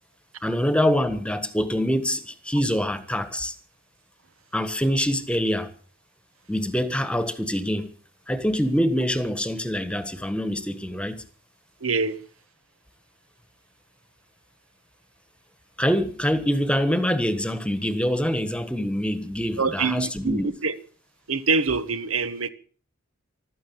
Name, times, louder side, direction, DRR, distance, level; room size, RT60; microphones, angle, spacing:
voice 1, 0.4-3.5 4.5-5.7 6.5-7.9 8.3-11.2 15.8-20.5, equal, 5° left, 1.4 m, -25 dB
voice 2, 11.8-12.2 19.6-20.8 21.3-22.5, right 4 dB, 75° right, 1.3 m, -25 dB
15.5 x 13.0 x 7.0 m
head